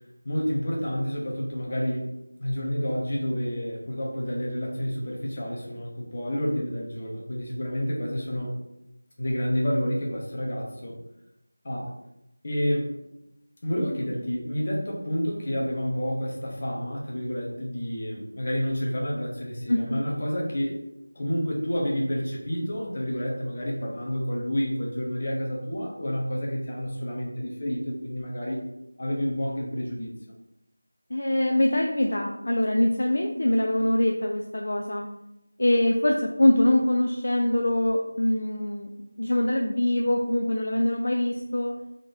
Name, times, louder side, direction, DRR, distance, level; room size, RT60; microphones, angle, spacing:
voice 1, 0.2-2.1 2.4-8.6 9.2-11.0 11.6-11.9 12.4-12.9 13.6-20.8 21.1-28.6 29.0-30.1, equal, 30° left, -2 dB, 0.9 m, -29 dB
voice 2, 19.7-20.0 31.1-35.1 35.6-38.9 39.2-41.7, left 1 dB, 50° left, 1 dB, 0.4 m, -23 dB
3.8 x 2.9 x 3.7 m, 0.88 s
figure-of-eight pair, 170°, 0 cm